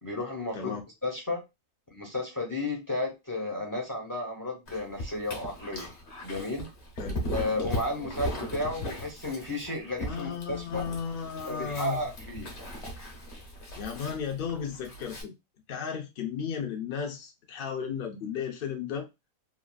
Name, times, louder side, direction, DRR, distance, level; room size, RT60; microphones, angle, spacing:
voice 1, 0.0-0.8 1.0-1.4 1.9-5.9 6.2-6.7 7.3-10.8 11.5-12.5, left 2 dB, 25° left, 0.4 m, -33 dB
Dog, 4.7-15.2, left 1 dB, 55° left, 1.0 m, -38 dB
voice 2, 10.1-12.1 13.8-15.3 15.7-19.1, left 7 dB, 80° left, 0.4 m, -34 dB
3.2 x 2.4 x 2.2 m
omnidirectional pair, 1.7 m